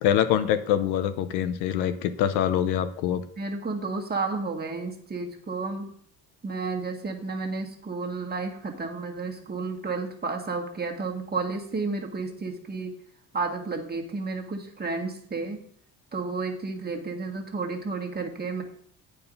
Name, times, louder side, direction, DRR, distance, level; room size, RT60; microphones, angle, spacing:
voice 1, 0.0-3.2, left 10 dB, 85° left, 10 dB, 0.8 m, -24 dB
voice 2, 3.4-5.9 6.4-12.9 13.3-15.6 16.1-18.6, right 3 dB, 25° right, 2 dB, 1.7 m, -31 dB
8.7 x 4.7 x 5.4 m, 0.63 s
supercardioid pair, 80°, 39 cm